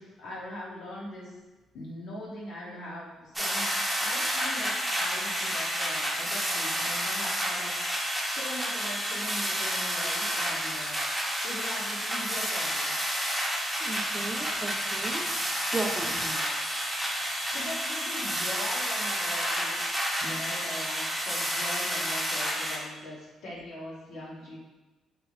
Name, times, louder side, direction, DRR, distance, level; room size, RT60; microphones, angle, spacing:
voice 1, 0.0-1.3 1.7-3.7 4.0-11.0 11.4-13.6 16.1-16.6 17.5-19.8 20.2-24.6, left 1 dB, 80° left, -5 dB, 1.2 m, -41 dB
sound 1, 3.3-22.8, equal, ahead, 0.7 m, -30 dB
voice 2, 13.8-15.3 15.7-16.2, right 3 dB, 25° right, 4 dB, 0.4 m, -35 dB
3.3 x 2.7 x 3.2 m, 1.2 s
cardioid pair, 90°, 0 cm